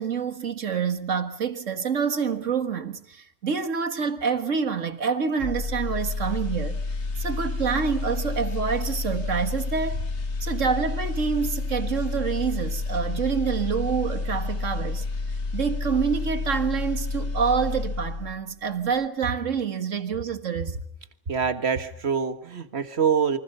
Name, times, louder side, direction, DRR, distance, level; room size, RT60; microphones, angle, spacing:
voice 1, 0.0-6.8 7.2-10.0 10.4-15.1 15.5-20.8, right 6 dB, 90° right, 2.0 m, -27 dB
sound 1, 5.4-18.5 18.9-19.1, left 3 dB, 65° left, 1.9 m, -30 dB
voice 2, 21.3-23.4, right 6 dB, 60° right, 1.8 m, -25 dB
27.5 x 24.5 x 5.5 m
omnidirectional pair, 1.3 m